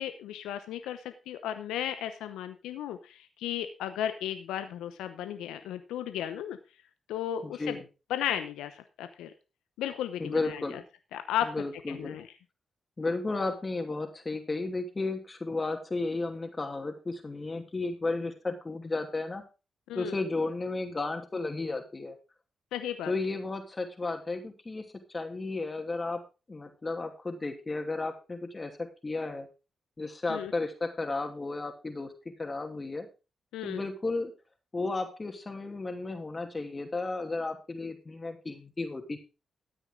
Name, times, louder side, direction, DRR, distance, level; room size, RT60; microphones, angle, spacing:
voice 1, 0.0-6.6 7.1-7.8 8.1-9.3 9.8-10.6 11.1-11.5 11.9-12.2 19.9-20.2 22.7-23.1 30.3-30.5 33.5-33.8, left 10 dB, 85° left, 9 dB, 0.9 m, -34 dB
voice 2, 7.4-7.8 10.2-10.8 11.4-12.2 13.0-19.4 19.9-22.2 23.1-24.8 25.1-26.2 26.5-28.7 29.0-29.5 30.0-33.1 33.6-34.3 34.7-39.2, left 3 dB, 35° left, 4 dB, 2.6 m, -33 dB
13.5 x 9.0 x 3.8 m, 0.31 s
hypercardioid pair, 40°, 0 cm